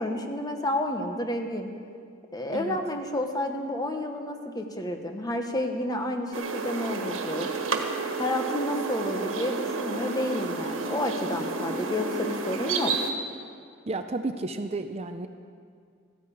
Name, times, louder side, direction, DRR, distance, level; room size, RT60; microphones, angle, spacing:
voice 1, 0.0-1.7 2.3-7.5 8.2-12.9, left 1 dB, 20° left, 4 dB, 1.2 m, -30 dB
sound 1, 6.3-13.1, right 4 dB, 85° right, 1.5 m, -31 dB
voice 2, 13.9-15.3, right 2 dB, 30° right, 8 dB, 0.5 m, -32 dB
14.5 x 10.5 x 8.6 m, 2.2 s
head